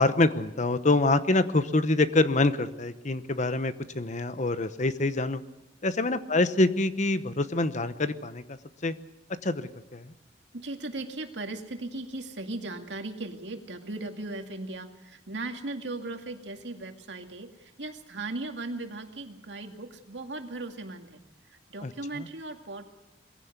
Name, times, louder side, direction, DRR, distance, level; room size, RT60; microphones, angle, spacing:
voice 1, 0.0-5.4 5.8-8.9 9.4-10.1 21.8-22.3, left 2 dB, 45° left, 12 dB, 1.0 m, -26 dB
voice 2, 10.5-21.2 21.5-22.8, right 2 dB, 85° right, 5 dB, 2.3 m, -37 dB
22.0 x 16.0 x 8.2 m, 0.94 s
head